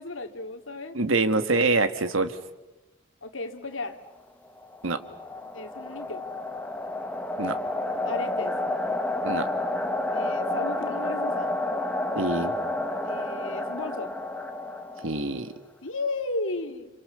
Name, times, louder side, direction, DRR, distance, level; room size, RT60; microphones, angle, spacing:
voice 1, 0.0-1.0 3.2-4.0 5.5-6.3 8.0-8.6 10.1-11.6 13.0-14.1 15.8-16.9, left 2 dB, 80° left, 7 dB, 2.3 m, -34 dB
voice 2, 0.9-2.4 4.8-5.0 7.4-7.6 9.2-9.5 12.2-12.5 15.0-15.5, right 3 dB, 85° right, 10 dB, 1.9 m, -25 dB
sound 1, 4.6-15.4, left 2 dB, 5° left, 1.1 m, -30 dB
30.0 x 27.0 x 6.9 m, 1.0 s
head